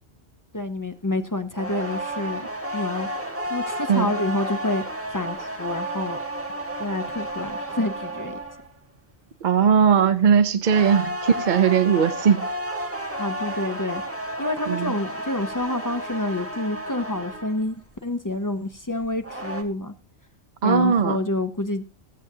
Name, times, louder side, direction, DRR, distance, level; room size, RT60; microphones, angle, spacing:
voice 1, 0.5-3.1 3.5-4.8 5.1-6.2 6.8-8.4 13.2-14.0 14.4-19.9 20.6-21.8, left 2 dB, 25° left, 0.5 m, -28 dB
sound 1, 1.5-8.7 10.6-17.7 19.0-19.6, right 1 dB, 10° right, 1.2 m, -32 dB
voice 2, 9.4-12.5 14.7-14.9 20.6-21.2, right 7 dB, 50° right, 0.7 m, -19 dB
22.0 x 7.9 x 2.8 m
omnidirectional pair, 1.2 m